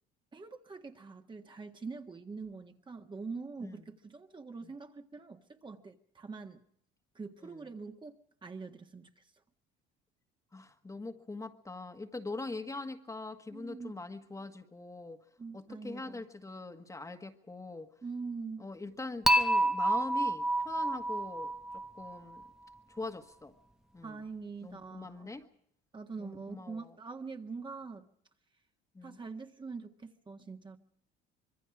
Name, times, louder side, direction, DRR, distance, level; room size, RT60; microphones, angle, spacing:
voice 1, 0.3-6.6 7.2-9.2 13.5-13.9 15.4-16.3 18.0-18.6 24.0-25.3 25.9-28.1 29.0-30.8, right 4 dB, 20° right, 5 dB, 1.7 m, -44 dB
voice 2, 10.5-15.2 15.5-17.9 18.6-22.4 22.9-23.5 23.9-24.2 24.6-25.5 26.2-26.9 28.9-29.2, left 3 dB, 15° left, 6 dB, 1.7 m, -42 dB
Dishes pots and pans / Chink clink, 19.3-22.4, right 1 dB, ahead, 1.1 m, -29 dB
25.5 x 22.5 x 4.9 m, 0.67 s
cardioid pair, 115°, 21 cm